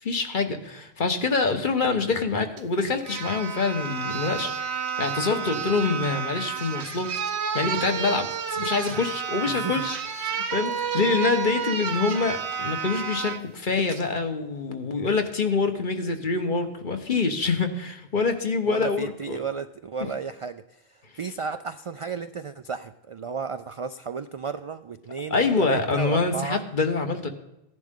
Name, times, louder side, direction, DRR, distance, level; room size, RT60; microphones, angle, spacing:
voice 1, 0.0-4.5 5.0-7.1 7.5-19.4 25.3-27.3, left 4 dB, 50° left, 6 dB, 1.3 m, -26 dB
sound 1, 2.6-2.7 3.0-13.4 13.9-14.1, right 7 dB, 80° right, 1.2 m, -30 dB
voice 2, 9.5-9.9 18.7-26.6, right 5 dB, 55° right, 11 dB, 0.3 m, -33 dB
16.0 x 10.5 x 3.7 m, 0.87 s
omnidirectional pair, 1.1 m